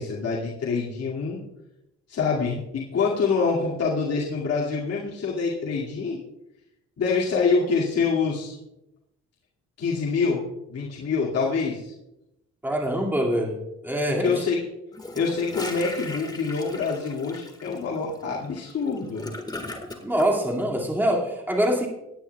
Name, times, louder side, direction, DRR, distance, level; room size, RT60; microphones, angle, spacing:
voice 1, 0.0-1.4 2.1-6.2 7.0-8.5 9.8-10.4 10.7-11.9 14.1-14.6 15.1-19.3, left 4 dB, 55° left, -5 dB, 2.3 m, -26 dB
voice 2, 12.6-14.3 20.0-21.9, equal, 5° right, -1 dB, 2.3 m, -24 dB
Gurgling / Toilet flush, 14.9-20.3, left 2 dB, 15° left, 1.7 m, -37 dB
18.5 x 9.8 x 2.3 m, 0.87 s
cardioid pair, 90°, 30 cm